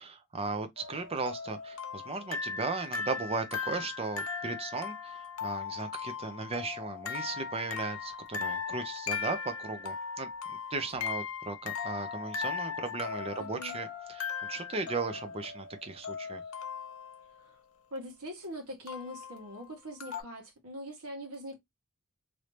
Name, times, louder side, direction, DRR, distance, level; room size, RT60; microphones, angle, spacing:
voice 1, 0.0-10.3 10.7-16.4, right 3 dB, 25° right, 0.6 m, -36 dB
sound 1, 0.8-17.2 18.9-19.4 20.0-20.2, left 6 dB, 65° left, 0.8 m, -38 dB
voice 2, 13.4-13.8 17.4-17.6 17.9-21.6, equal, 80° right, 1.5 m, -42 dB
3.1 x 2.7 x 3.2 m
head